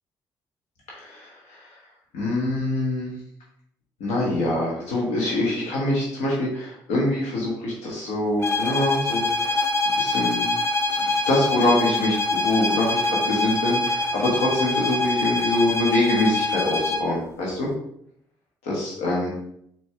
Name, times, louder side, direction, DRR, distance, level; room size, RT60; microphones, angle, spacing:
voice 1, 0.9-1.7 2.1-3.2 4.0-10.5 11.0-17.7 18.6-19.3, left 1 dB, 80° left, -4 dB, 1.2 m, -25 dB
sound 1, 8.4-17.1, left 2 dB, 25° left, 0.6 m, -25 dB
4.4 x 3.1 x 3.3 m, 0.71 s
hypercardioid pair, 50°, 10 cm